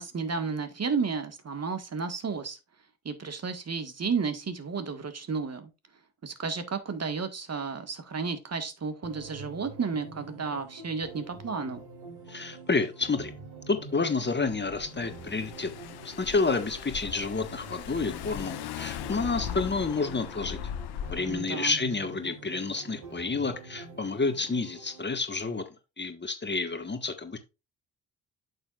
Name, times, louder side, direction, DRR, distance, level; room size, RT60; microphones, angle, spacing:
voice 1, 0.0-2.6 3.0-5.7 6.2-11.8 21.3-21.8, right 5 dB, 35° right, 1.6 m, -32 dB
sound 1, 9.0-25.0, right 3 dB, 65° right, 4.1 m, -46 dB
voice 2, 12.3-13.3 13.7-15.7 16.0-20.6 21.1-25.6 26.0-27.4, left 4 dB, 25° left, 1.4 m, -29 dB
Car / Engine, 14.5-21.4, left 10 dB, 65° left, 0.9 m, -39 dB
8.7 x 6.8 x 2.4 m
hypercardioid pair, 45°, 41 cm